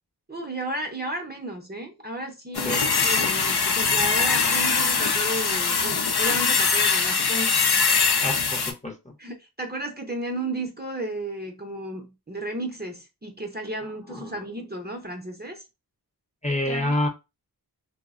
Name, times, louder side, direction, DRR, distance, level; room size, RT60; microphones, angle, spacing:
voice 1, 0.3-7.6 9.2-15.6 16.7-17.0, right 1 dB, 25° right, 0.5 m, -33 dB
sound 1, 2.5-8.7, left 5 dB, 75° left, 0.5 m, -22 dB
voice 2, 8.2-8.9 14.1-14.3 16.4-17.1, left 1 dB, 20° left, 0.6 m, -27 dB
3.1 x 2.0 x 2.3 m
wide cardioid pair, 45°, 39 cm